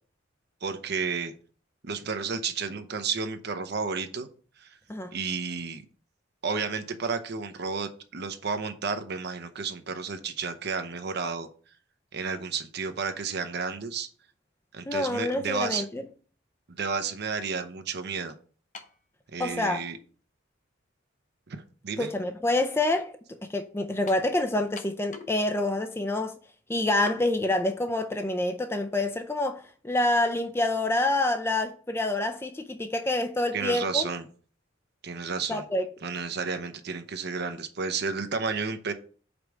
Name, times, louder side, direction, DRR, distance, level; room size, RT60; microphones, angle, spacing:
voice 1, 0.6-1.3 1.8-4.3 4.6-4.8 5.1-5.8 6.4-11.5 12.1-14.1 14.7-15.9 16.8-18.3 19.3-20.0 21.5-22.1 33.5-34.3 35.0-35.6 36.0-38.9, right 5 dB, 60° right, 0.7 m, -32 dB
voice 2, 14.9-16.0 19.4-19.8 22.0-23.1 23.4-26.4 26.7-34.0 35.5-35.9, left 2 dB, 15° left, 0.4 m, -27 dB
sound 1, 18.7-19.0 19.9-20.0 24.1-24.3 24.8-25.4 25.7-25.8 27.1-27.2, left 4 dB, 40° left, 0.9 m, -42 dB
5.1 x 4.6 x 6.1 m
head